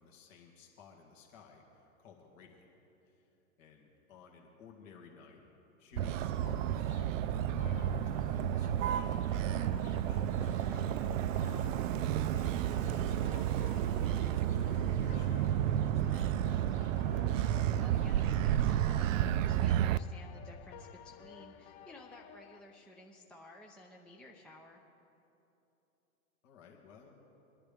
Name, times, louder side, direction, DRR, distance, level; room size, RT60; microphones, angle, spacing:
voice 1, 0.0-2.7 3.0-5.5 5.8-11.6 11.9-12.0 12.5-16.7 26.4-27.2, left 6 dB, 60° left, 0 dB, 2.2 m, -57 dB
sound 1, 5.9-19.7, left 3 dB, 80° left, 3.2 m, -50 dB
voice 2, 6.0-6.3 12.7-13.1 17.5-24.8, left 1 dB, 5° left, 0 dB, 0.4 m, -55 dB
Motor vehicle (road), 6.0-20.0, right 11 dB, 65° right, 0.5 m, -31 dB
sound 2, 7.6-22.6, left 9 dB, 40° left, 0.8 m, -55 dB
22.0 x 11.0 x 3.5 m, 3.0 s
hypercardioid pair, 125°, 42 cm